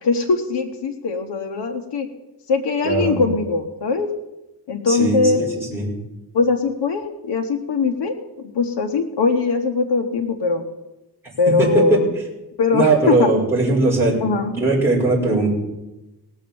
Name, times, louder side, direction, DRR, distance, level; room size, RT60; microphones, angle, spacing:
voice 1, 0.0-2.1 2.5-4.1 4.7-5.4 6.3-8.1 8.6-10.6 11.4-12.1 12.6-13.3 14.2-14.5, left 4 dB, 85° left, 3 dB, 1.2 m, -21 dB
voice 2, 2.8-3.2 4.9-6.0 11.6-12.0 12.7-14.2 14.5-15.5, right 2 dB, 5° right, -6 dB, 5.0 m, -19 dB
18.5 x 6.5 x 7.0 m, 0.99 s
wide cardioid pair, 115°, 41 cm